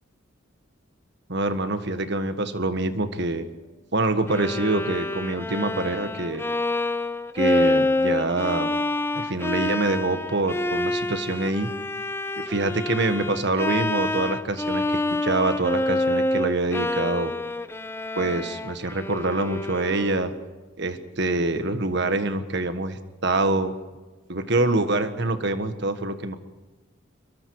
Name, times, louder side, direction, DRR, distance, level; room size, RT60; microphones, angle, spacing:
voice 1, 1.3-3.5 3.9-6.4 7.3-8.7 9.1-11.7 12.4-17.3 18.1-20.3 20.8-23.7 24.3-26.3, right 2 dB, 55° right, 9 dB, 1.6 m, -25 dB
Bowed string instrument, 4.3-20.4, left 2 dB, 10° left, 0.6 m, -27 dB
24.5 x 22.5 x 4.8 m, 1.3 s
head